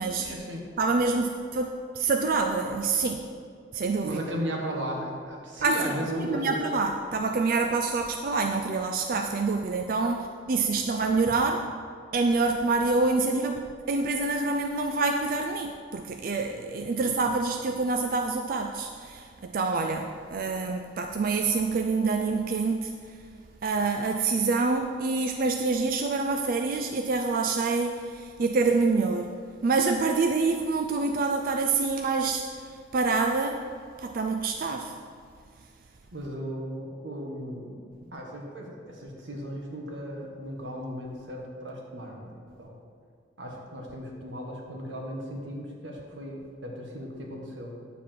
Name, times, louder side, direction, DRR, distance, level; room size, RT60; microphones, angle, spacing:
voice 1, 0.2-0.7 4.0-6.8 17.0-17.1 36.1-37.8 38.1-42.8 43.4-47.7, right 1 dB, 85° right, 0 dB, 1.7 m, -36 dB
voice 2, 0.8-3.2 3.7-4.2 5.6-5.8 6.3-11.6 12.1-23.2 23.6-29.3 29.6-33.6 34.0-34.9, right 3 dB, 50° right, 4 dB, 0.4 m, -26 dB
9.9 x 7.2 x 4.6 m, 2.2 s
head